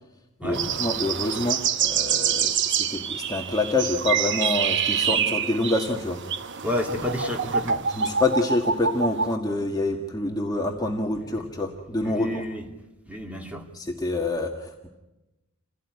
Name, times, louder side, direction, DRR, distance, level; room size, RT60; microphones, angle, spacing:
voice 1, 0.4-6.2 7.9-12.4 13.7-14.9, left 2 dB, 20° left, 1 dB, 1.7 m, -27 dB
sound 1, 0.5-9.3, right 7 dB, 55° right, 1.0 m, -26 dB
voice 2, 6.6-7.8 11.2-11.5 12.0-12.7 13.1-13.7, left 1 dB, 5° right, 2 dB, 2.8 m, -31 dB
28.5 x 17.0 x 9.6 m, 1.0 s
head